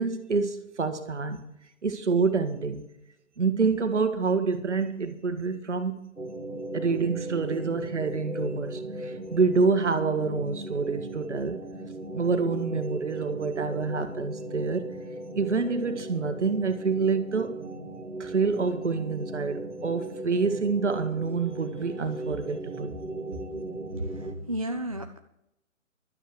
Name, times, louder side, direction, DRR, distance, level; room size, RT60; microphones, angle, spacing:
voice 1, 0.0-1.4 1.8-2.8 3.4-6.0 6.7-11.6 12.1-14.9 15.3-17.6 18.2-22.9, right 4 dB, 60° right, 8 dB, 1.7 m, -27 dB
sound 1, 6.2-24.3, right 2 dB, 90° right, 2.2 m, -38 dB
voice 2, 24.0-25.2, right 1 dB, 30° right, 5 dB, 0.4 m, -33 dB
12.0 x 9.5 x 6.3 m, 0.82 s
figure-of-eight pair, 135°, 41 cm